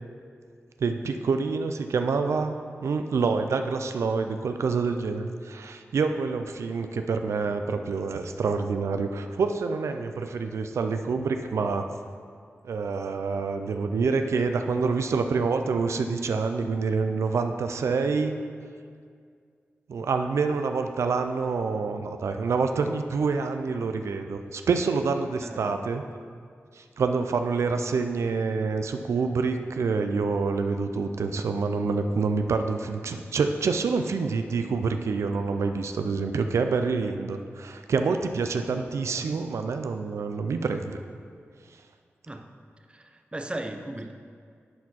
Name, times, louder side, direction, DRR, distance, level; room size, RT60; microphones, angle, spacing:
voice 1, 0.8-2.5 2.8-11.9 12.6-18.4 19.9-26.0 26.8-41.0, right 4 dB, 90° right, 7 dB, 0.4 m, -27 dB
voice 2, 25.4-25.8 39.2-39.3 42.3-42.5 42.9-44.1, right 1 dB, 20° right, 6 dB, 0.6 m, -37 dB
10.5 x 4.4 x 4.2 m, 2.1 s
wide cardioid pair, 75°, 5 cm